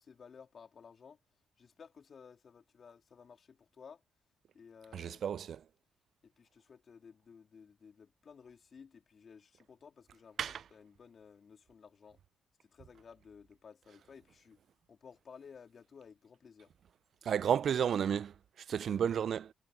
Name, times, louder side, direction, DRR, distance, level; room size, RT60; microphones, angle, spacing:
voice 1, 0.1-1.2 1.6-4.0 4.5-5.2 6.2-12.2 12.6-14.6 14.9-16.7, left 6 dB, 45° left, 3.2 m, -56 dB
voice 2, 4.9-5.6 10.4-10.6 17.2-19.5, right 8 dB, 60° right, 0.3 m, -32 dB
cardioid pair, 90°, 0 cm